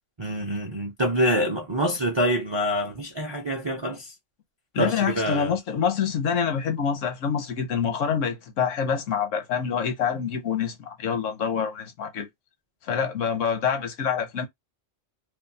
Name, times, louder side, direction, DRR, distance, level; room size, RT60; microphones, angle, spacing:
voice 1, 0.2-4.1 4.8-5.5, equal, 45° right, 0.3 m, -26 dB
voice 2, 4.7-12.3 12.8-14.5, left 7 dB, 80° left, 1.1 m, -26 dB
2.6 x 2.3 x 2.6 m
omnidirectional pair, 1.3 m